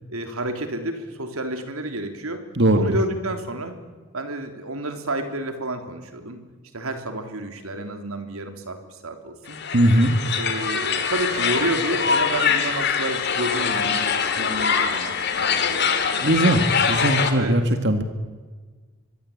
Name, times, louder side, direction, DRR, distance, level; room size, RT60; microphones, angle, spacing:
voice 1, 0.1-2.4 2.7-3.8 4.1-6.4 6.7-9.6 10.4-16.5 17.3-17.6, right 1 dB, 80° right, 6 dB, 3.4 m, -30 dB
voice 2, 2.5-3.0 9.7-10.1 16.2-16.6 16.9-18.0, right 1 dB, 50° right, 8 dB, 1.9 m, -19 dB
sound 1, 9.5-17.3, left 6 dB, 50° left, 2.6 m, -23 dB
25.0 x 22.5 x 8.7 m, 1.4 s
head